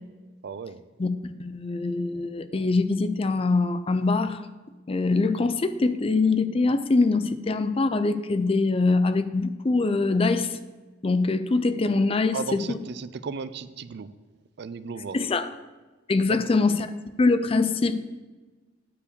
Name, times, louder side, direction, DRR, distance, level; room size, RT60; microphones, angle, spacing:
voice 1, 0.4-0.8 12.3-14.1 14.6-15.2 16.2-16.6, right 5 dB, 55° right, 14 dB, 0.4 m, -35 dB
voice 2, 1.0-4.4 4.9-10.5 11.0-12.8 15.1-15.5 16.1-16.9 17.2-18.0, left 3 dB, 30° left, 12 dB, 0.4 m, -23 dB
9.5 x 4.7 x 6.8 m, 1.3 s
head